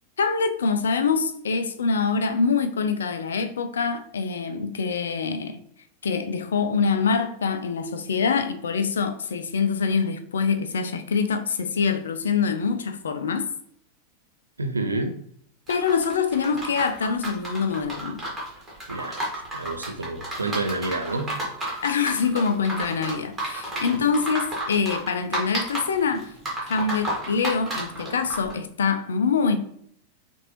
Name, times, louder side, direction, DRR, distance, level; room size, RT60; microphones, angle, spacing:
voice 1, 0.2-5.6 6.0-13.5 15.7-18.2 21.8-26.3 26.7-29.6, left 5 dB, 65° left, 10 dB, 0.5 m, -25 dB
voice 2, 14.6-15.2 18.9-19.2 19.5-21.3 23.9-24.0, right 2 dB, 80° right, 6 dB, 0.5 m, -29 dB
sound 1, 15.7-28.5, right 1 dB, 10° right, 1.8 m, -32 dB
5.9 x 2.6 x 3.0 m, 0.65 s
figure-of-eight pair, 90°, 0 cm